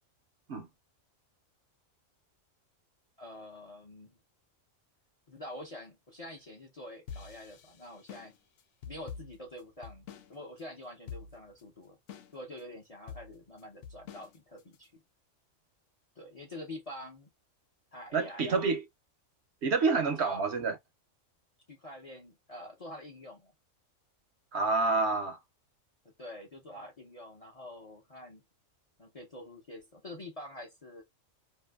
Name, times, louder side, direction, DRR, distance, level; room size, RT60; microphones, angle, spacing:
voice 1, 3.2-4.2 5.3-8.3 8.9-12.0 12.3-15.0 16.2-17.3 17.9-18.7 20.2-20.5 21.7-23.5 26.2-28.4 29.0-31.0, left 1 dB, 40° left, 0.6 m, -46 dB
sound 1, 7.1-10.3 10.6-10.7 11.1-11.6 12.1-12.6 13.1-14.9, left 6 dB, 70° left, 0.9 m, -46 dB
voice 2, 18.1-18.8 19.6-20.7 24.5-25.4, right 4 dB, 65° right, 0.8 m, -28 dB
2.7 x 2.5 x 2.2 m
omnidirectional pair, 1.3 m